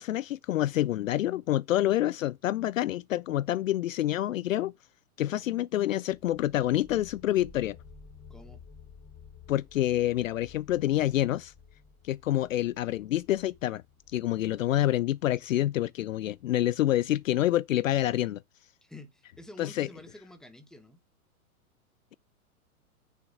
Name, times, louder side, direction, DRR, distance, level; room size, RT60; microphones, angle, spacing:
voice 1, 0.0-4.7 5.2-7.8 9.5-11.5 12.0-13.8 14.1-18.4 19.6-19.9, left 13 dB, 65° left, 0.5 m, -27 dB
sound 1, 6.1-17.5, left 5 dB, 40° left, 4.6 m, -54 dB
voice 2, 8.3-8.6 18.8-21.0, left 1 dB, ahead, 1.2 m, -49 dB
8.9 x 6.8 x 4.7 m
hypercardioid pair, 115°, 44 cm